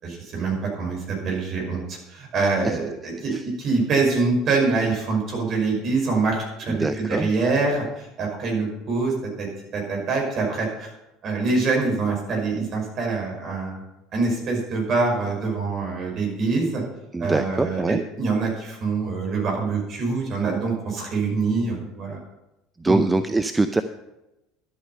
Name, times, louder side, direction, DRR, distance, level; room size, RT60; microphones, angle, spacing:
voice 1, 0.0-3.3 3.6-10.9 11.2-13.8 14.1-16.8 17.2-22.2 22.8-23.0, right 4 dB, 45° right, 0 dB, 5.5 m, -25 dB
voice 2, 6.7-7.3 17.1-18.0 22.8-23.8, right 2 dB, 15° right, 10 dB, 0.6 m, -23 dB
12.0 x 8.7 x 5.6 m, 0.93 s
hypercardioid pair, 70°, 0 cm